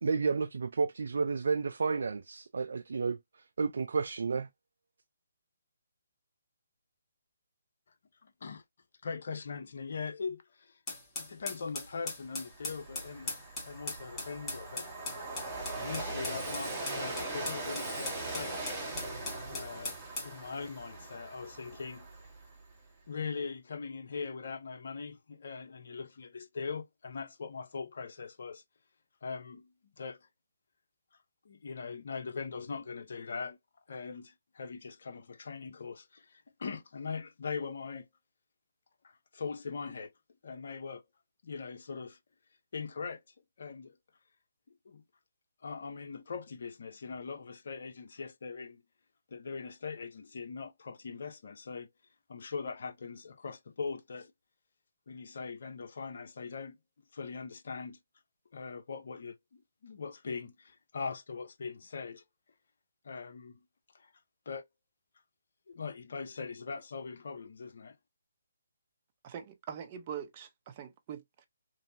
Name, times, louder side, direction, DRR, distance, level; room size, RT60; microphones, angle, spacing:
voice 1, 0.0-3.2 3.6-4.5, right 4 dB, 65° right, 0.3 m, -31 dB
voice 2, 8.2-8.6 9.0-10.8 11.2-13.3 13.6-14.9 15.2-18.8 19.5-20.0 20.2-22.1 23.1-28.6 29.2-29.7 30.0-30.2 31.4-33.6 33.9-38.1 39.0-40.1 40.4-41.0 41.4-42.2 42.7-43.2 43.6-44.0 44.8-45.0 45.6-48.8 49.3-51.9 52.3-54.3 55.1-56.7 57.1-58.0 58.5-62.2 63.0-63.6 63.9-64.1 64.5-64.6 65.7-68.0, left 5 dB, 60° left, 0.7 m, -41 dB
sound 1, 10.9-20.3, left 2 dB, 15° left, 1.2 m, -40 dB
Train, 11.8-11.9 12.3-22.7, right 2 dB, 10° right, 1.4 m, -40 dB
voice 3, 69.2-71.5, right 8 dB, 30° right, 0.7 m, -43 dB
3.1 x 2.6 x 2.5 m
figure-of-eight pair, 150°, 0 cm